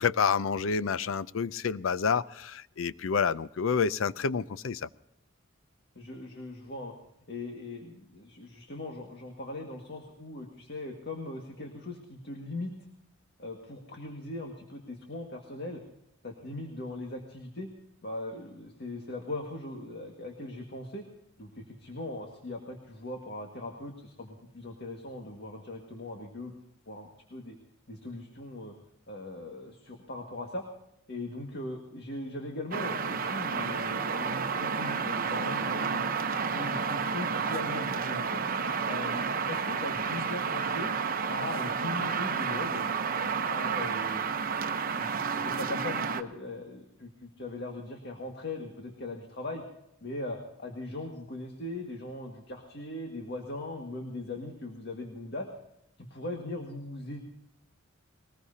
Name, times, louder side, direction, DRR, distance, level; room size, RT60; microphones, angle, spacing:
voice 1, 0.0-4.9, left 6 dB, 80° left, 17 dB, 0.5 m, -28 dB
voice 2, 6.0-6.9 7.3-12.7 13.4-15.8 16.2-17.7 18.0-21.1 21.4-26.5 26.9-27.6 27.9-28.7 29.1-30.7 31.1-36.1 36.5-38.4 38.8-40.9 41.3-42.9 43.2-44.3 45.0-49.6 50.0-55.5 56.0-57.2, left 2 dB, 55° left, 2 dB, 1.9 m, -40 dB
sound 1, 32.7-46.2, right 6 dB, 45° right, 0.9 m, -31 dB
21.0 x 20.0 x 2.8 m, 0.79 s
head